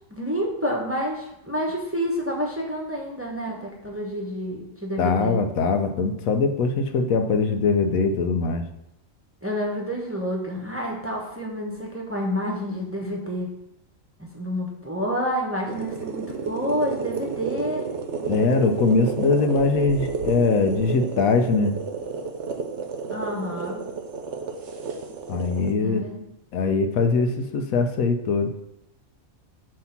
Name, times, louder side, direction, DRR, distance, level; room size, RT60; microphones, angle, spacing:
voice 1, 0.1-5.4 9.4-13.5 14.2-17.8 23.1-23.8 25.8-26.2, equal, 10° right, -1 dB, 0.8 m, -29 dB
voice 2, 5.0-8.6 18.3-21.8 25.3-26.0 26.5-28.5, left 4 dB, 90° left, 7 dB, 1.1 m, -22 dB
sound 1, 15.7-25.7, right 5 dB, 60° right, 1.1 m, -31 dB
7.6 x 2.9 x 5.8 m, 0.85 s
omnidirectional pair, 1.4 m